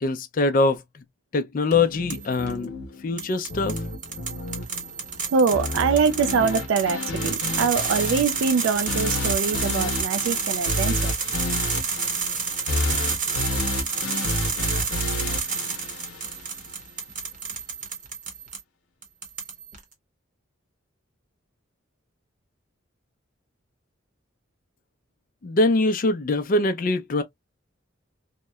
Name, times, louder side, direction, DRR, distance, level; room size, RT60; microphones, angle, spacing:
voice 1, 0.0-0.8 1.3-2.7 3.0-3.8 25.4-27.2, left 2 dB, 40° left, 0.4 m, -23 dB
sound 1, 1.7-16.7, left 2 dB, 85° left, 0.8 m, -31 dB
sound 2, 2.1-2.5 3.2-18.6 19.0-19.8, right 6 dB, 40° right, 0.8 m, -30 dB
voice 2, 5.3-11.1, right 5 dB, 70° right, 0.3 m, -23 dB
2.8 x 2.0 x 2.2 m
head